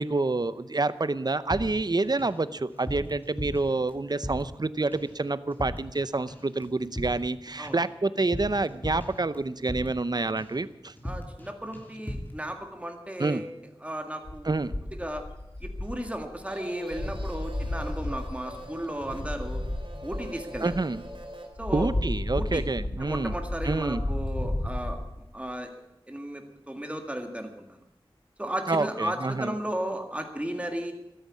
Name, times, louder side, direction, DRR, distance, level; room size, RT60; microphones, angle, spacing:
voice 1, 0.0-10.9 13.2-13.4 14.4-14.7 20.6-21.0 21.7-23.4 23.6-24.0 28.7-29.5, right 3 dB, 45° right, 15 dB, 0.7 m, -28 dB
sound 1, 1.5-2.4 2.7-4.6 4.9-5.2 5.5-6.0 6.3-10.1 10.4-10.7 11.0-11.5 11.7-12.4, equal, 20° left, 3.0 m, -38 dB
voice 2, 11.0-13.5 13.8-14.6 15.0-15.2 15.6-19.6 20.0-20.7 21.6-21.9 22.3-22.6 23.0-25.0 25.3-25.7 26.1-27.8 28.4-30.9, right 1 dB, 15° right, 4 dB, 1.8 m, -35 dB
sound 2, 14.2-16.5 16.9-21.2 21.6-24.9, left 1 dB, 70° left, 3.3 m, -33 dB
sound 3, 16.5-21.5, right 1 dB, 65° right, 2.9 m, -44 dB
13.5 x 10.5 x 8.4 m, 0.90 s
wide cardioid pair, 55°, 9 cm